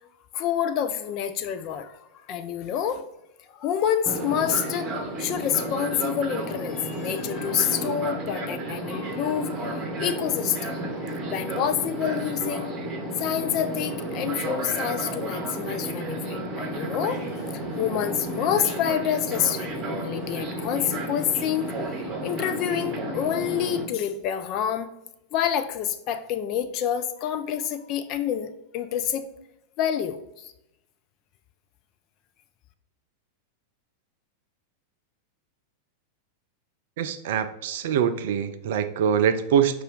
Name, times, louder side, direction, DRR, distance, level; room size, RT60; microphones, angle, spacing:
voice 1, 0.3-3.1 3.5-4.9 5.2-10.8 11.3-12.8 13.2-21.9 22.2-24.9 25.3-29.3 29.8-30.5, left 9 dB, 40° left, 9 dB, 0.4 m, -28 dB
Fixed-wing aircraft airplane, 4.1-23.8, right 1 dB, 25° right, 0.9 m, -32 dB
voice 2, 37.0-39.8, right 8 dB, 55° right, 10 dB, 0.3 m, -24 dB
5.4 x 2.4 x 3.8 m, 0.88 s
figure-of-eight pair, 90°, 0 cm